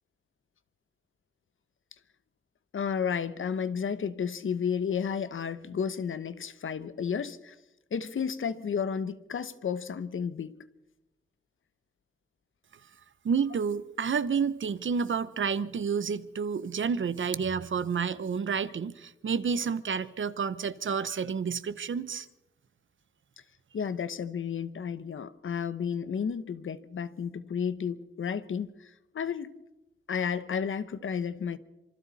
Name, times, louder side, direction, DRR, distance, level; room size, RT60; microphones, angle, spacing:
voice 1, 2.7-7.5 7.9-10.6 23.7-28.9 29.1-29.5 30.1-31.6, left 7 dB, 85° left, 1.0 m, -32 dB
voice 2, 13.2-22.3, right 6 dB, 75° right, 0.9 m, -30 dB
26.5 x 25.0 x 4.2 m
wide cardioid pair, 100°, 20 cm